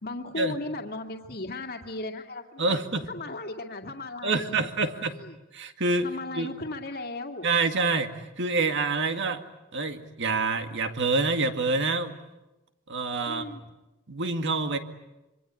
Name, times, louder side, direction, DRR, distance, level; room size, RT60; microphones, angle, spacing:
voice 1, 0.0-2.8 3.0-5.4 6.0-7.5 13.3-13.7, left 2 dB, 50° left, 3 dB, 2.2 m, -37 dB
voice 2, 2.6-3.1 4.2-5.2 5.5-6.1 6.3-6.5 7.4-9.4 9.7-12.1 12.9-13.5 14.1-14.8, right 3 dB, 60° right, 7 dB, 2.0 m, -27 dB
26.5 x 24.0 x 9.0 m, 1.0 s
head